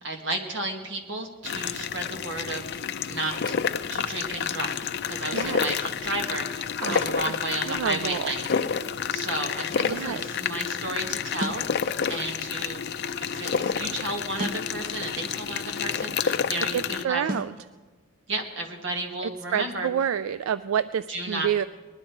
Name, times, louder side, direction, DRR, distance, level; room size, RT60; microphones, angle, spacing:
voice 1, 0.0-2.8 3.1-3.6 3.9-8.5 9.1-12.8 13.2-17.3 18.3-19.9 21.1-21.5, right 2 dB, 60° right, 3 dB, 1.9 m, -33 dB
sound 1, 1.4-17.0, left 7 dB, 55° left, 0.5 m, -29 dB
voice 2, 6.8-7.3 7.7-8.3 9.8-10.2 16.7-17.5 19.2-21.6, right 8 dB, 85° right, 14 dB, 0.3 m, -28 dB
Ganon Snare Drum, 11.4-11.7 14.4-14.7 17.3-17.6, equal, 45° right, 0.9 m, -32 dB
20.0 x 11.5 x 4.6 m, 1.3 s
head